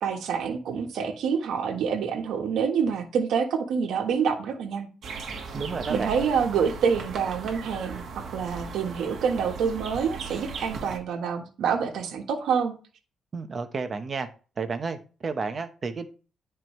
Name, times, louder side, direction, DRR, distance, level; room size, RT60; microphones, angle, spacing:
voice 1, 0.0-4.9 5.9-12.7, right 6 dB, 80° right, 1.4 m, -27 dB
sound 1, 5.0-11.0, right 4 dB, 55° right, 1.4 m, -37 dB
voice 2, 5.5-6.1 13.3-14.3 14.6-16.1, right 4 dB, 35° right, 0.9 m, -31 dB
9.8 x 4.6 x 3.1 m
cardioid pair, 140°, 0 cm